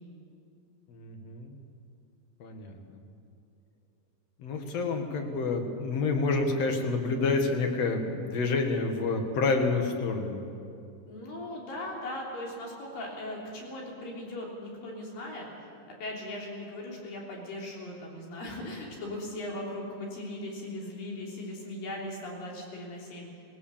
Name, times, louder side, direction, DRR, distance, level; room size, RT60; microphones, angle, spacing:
voice 1, 0.9-1.6 2.4-3.0 4.4-10.4, left 3 dB, 55° left, 4 dB, 2.5 m, -28 dB
voice 2, 11.1-15.5 16.0-23.3, left 1 dB, 90° left, -3 dB, 5.3 m, -38 dB
20.0 x 19.0 x 7.2 m, 2.5 s
omnidirectional pair, 3.9 m